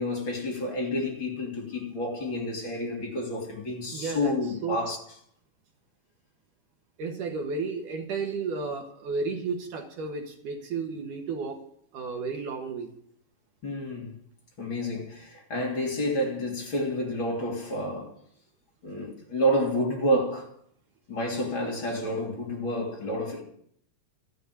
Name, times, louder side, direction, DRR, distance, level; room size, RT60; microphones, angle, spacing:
voice 1, 0.0-5.0 13.6-14.1 14.6-18.1 18.8-20.5 21.1-23.4, equal, 35° left, 3.6 m, -29 dB
voice 2, 3.9-4.3 4.6-4.8 7.0-11.6 11.9-12.9, right 4 dB, 70° right, 2.9 m, -32 dB
14.0 x 6.9 x 9.5 m
omnidirectional pair, 3.9 m